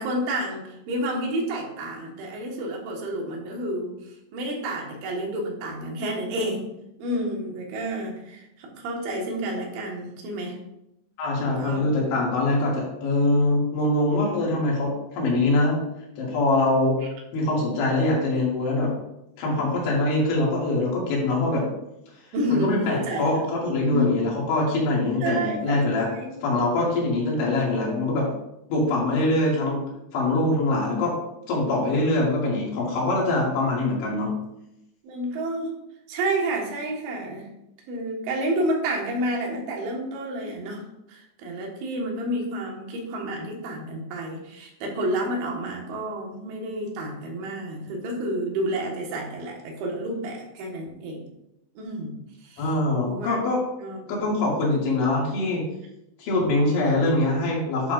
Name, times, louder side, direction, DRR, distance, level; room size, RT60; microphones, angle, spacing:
voice 1, 0.0-6.6 7.0-10.6 11.4-11.8 22.3-23.5 23.9-24.1 25.2-26.3 26.7-26.8 35.0-35.7 36.1-37.5 37.9-40.8 41.1-51.2 51.8-52.2 52.4-52.7 53.0-53.4 53.8-54.0, right 1 dB, 80° right, -1 dB, 4.0 m, -30 dB
voice 2, 11.2-15.8 16.2-17.0 17.3-18.9 19.4-21.6 22.5-26.1 26.4-28.3 28.7-29.8 30.1-31.1 31.5-34.3 52.6-53.6 54.1-55.6 56.2-57.9, left 2 dB, 80° left, -4 dB, 4.6 m, -23 dB
11.5 x 7.3 x 2.6 m, 0.86 s
omnidirectional pair, 5.3 m